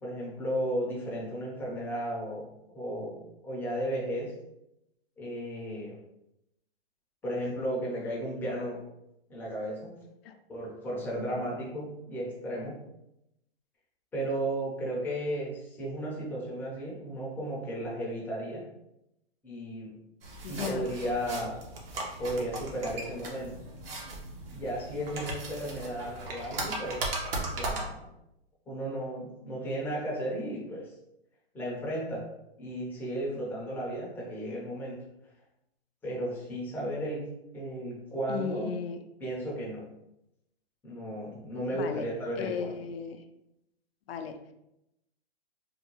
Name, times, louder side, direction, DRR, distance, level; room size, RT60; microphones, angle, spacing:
voice 1, 0.0-2.5 2.7-4.3 5.2-6.0 7.2-8.8 9.3-10.0 10.5-12.8 14.1-18.7 19.4-20.0 20.5-21.6 22.2-23.5 24.5-27.0 27.4-28.1 28.7-30.9 31.5-32.3 32.6-35.0 36.0-38.7 39.2-39.8 40.8-42.7, right 1 dB, 5° left, -5 dB, 0.6 m, -34 dB
sound 1, 20.2-27.8, right 2 dB, 60° right, 1.0 m, -37 dB
voice 2, 20.4-20.9 38.3-39.0 41.7-42.1 42.4-43.2 44.1-44.4, left 7 dB, 70° left, 7 dB, 0.5 m, -35 dB
3.6 x 2.2 x 3.0 m, 0.85 s
hypercardioid pair, 145°, 32 cm